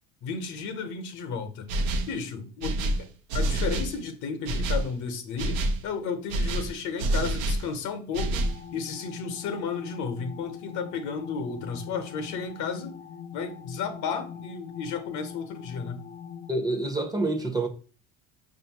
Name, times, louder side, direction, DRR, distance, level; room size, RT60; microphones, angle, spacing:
voice 1, 0.2-1.7 2.1-3.1 3.3-13.0 13.3-16.0, left 5 dB, 65° left, 0.9 m, -33 dB
sound 1, 1.7-2.2 2.6-4.0 4.5-4.9 5.4-5.8 6.3-7.7 8.1-8.6, right 1 dB, 75° right, 0.6 m, -27 dB
sound 2, 8.4-16.5, left 8 dB, 25° left, 0.4 m, -42 dB
voice 2, 16.5-17.7, right 2 dB, 10° right, 0.7 m, -27 dB
5.0 x 2.6 x 2.8 m
supercardioid pair, 85°, 32 cm